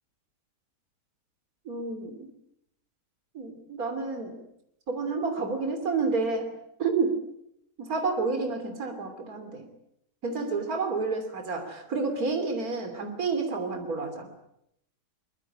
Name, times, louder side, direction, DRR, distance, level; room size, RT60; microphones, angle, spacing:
voice 1, 1.7-2.3 3.3-4.4 4.9-7.2 7.8-9.7 10.2-14.3, right 4 dB, 55° right, 6 dB, 3.5 m, -30 dB
22.5 x 22.5 x 8.6 m, 0.76 s
omnidirectional pair, 1.8 m